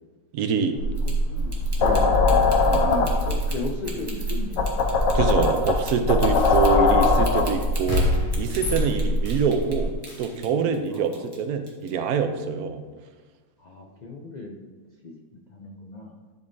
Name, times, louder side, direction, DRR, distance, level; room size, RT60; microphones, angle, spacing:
voice 1, 0.3-0.8 5.1-8.1 8.4-9.9 10.2-12.8, right 5 dB, 70° right, 7 dB, 1.1 m, -25 dB
sound 1, 0.8-9.9, left 2 dB, 60° left, 1.0 m, -22 dB
voice 2, 1.0-2.4 2.7-4.7 10.9-11.2 13.6-14.6 15.0-15.1 15.5-16.1, left 2 dB, 80° left, 0 dB, 0.4 m, -35 dB
sound 2, 1.0-9.8 10.0-11.4 11.7-11.9, right 2 dB, 20° right, 0.8 m, -41 dB
sound 3, 6.4-6.6 7.9-9.5 10.1-10.3, left 3 dB, 30° left, 2.0 m, -28 dB
10.5 x 5.2 x 2.7 m, 1.3 s
omnidirectional pair, 1.7 m